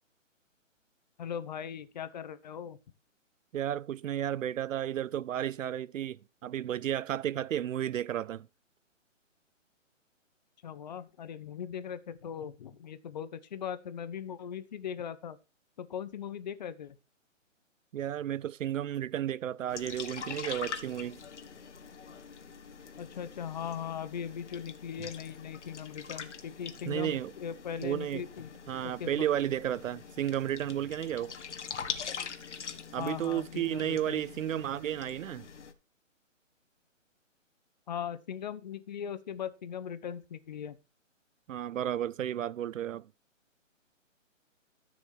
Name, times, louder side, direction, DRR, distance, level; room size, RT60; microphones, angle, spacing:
voice 1, 1.2-2.8 10.6-15.4 15.8-17.0 23.0-28.5 29.0-29.3 33.0-34.2 37.9-40.8, left 8 dB, 35° left, 0.9 m, -39 dB
voice 2, 3.5-8.5 17.9-21.2 26.9-27.3 27.8-28.2 28.7-31.3 32.9-35.4 41.5-43.1, right 11 dB, 75° right, 0.5 m, -33 dB
sound 1, 19.7-35.7, left 6 dB, 65° left, 1.7 m, -44 dB
13.0 x 6.2 x 4.7 m
hypercardioid pair, 155°, 39 cm